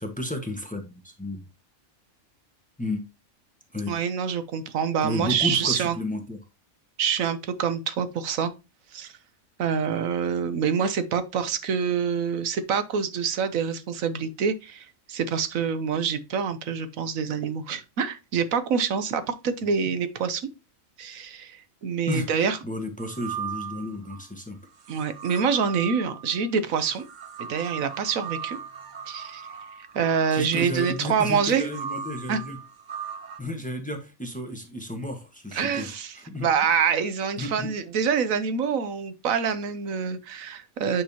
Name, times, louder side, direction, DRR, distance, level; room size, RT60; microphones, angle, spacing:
voice 1, 0.0-1.5 2.8-3.0 3.7-3.9 5.0-6.4 22.1-22.3 22.6-24.6 30.3-32.6 33.4-36.5 37.4-37.7, left 1 dB, 5° left, 1.2 m, -32 dB
voice 2, 3.9-6.0 7.0-8.5 8.9-9.1 9.6-20.5 21.0-22.6 24.9-27.0 27.5-28.6 29.1-29.5 29.8-31.7 32.3-32.4 35.5-36.1 36.4-41.0, right 6 dB, 85° right, 1.3 m, -26 dB
sound 1, 23.0-24.2 24.8-33.4, right 8 dB, 45° right, 0.6 m, -38 dB
8.8 x 5.4 x 2.8 m
omnidirectional pair, 1.4 m